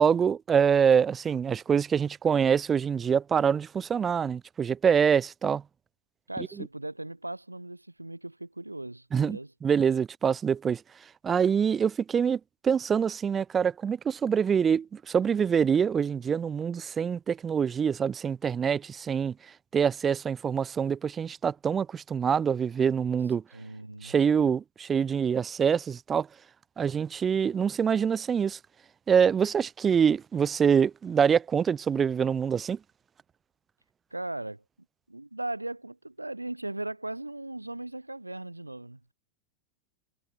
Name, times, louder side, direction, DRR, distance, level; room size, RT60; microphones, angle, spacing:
voice 1, 0.0-5.6 9.1-10.8 11.2-19.3 19.7-23.4 24.0-26.3 26.8-28.6 29.1-32.8, right 7 dB, 20° right, 1.1 m, -25 dB
voice 2, 6.3-9.5 23.5-24.5 34.1-34.6 35.1-39.1, right 2 dB, 85° right, 3.0 m, -38 dB
figure-of-eight pair, 90°, 0 cm